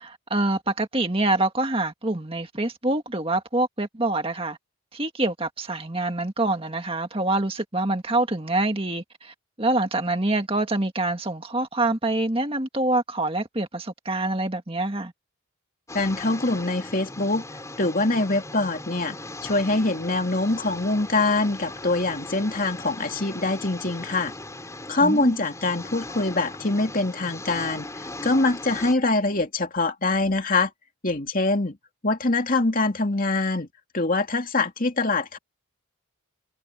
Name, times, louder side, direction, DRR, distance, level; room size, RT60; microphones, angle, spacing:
voice 1, 0.0-4.6 4.9-15.1 25.0-25.3, right 2 dB, 25° right, 1.9 m, -26 dB
voice 2, 15.9-17.4 17.8-19.2 19.4-24.3 24.9-27.9 28.2-30.7 31.0-31.8 32.0-33.7 33.9-35.4, left 2 dB, 40° left, 2.6 m, -24 dB
sound 1, 15.9-28.9, left 2 dB, 15° left, 5.2 m, -38 dB
head